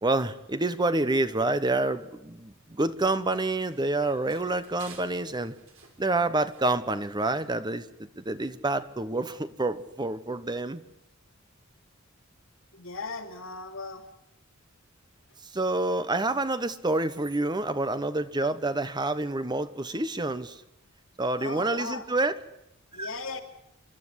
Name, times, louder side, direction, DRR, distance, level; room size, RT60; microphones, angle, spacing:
voice 1, 0.0-5.5 6.0-7.9 8.2-10.8 15.5-20.6 21.2-22.4 23.0-23.1, right 2 dB, 20° right, 12 dB, 1.0 m, -28 dB
Run, 2.3-7.5, right 4 dB, 80° right, 4.5 m, -54 dB
voice 2, 12.7-14.0 21.4-22.0 22.9-23.4, left 3 dB, 75° left, 3 dB, 3.0 m, -37 dB
29.0 x 12.5 x 9.8 m, 0.84 s
head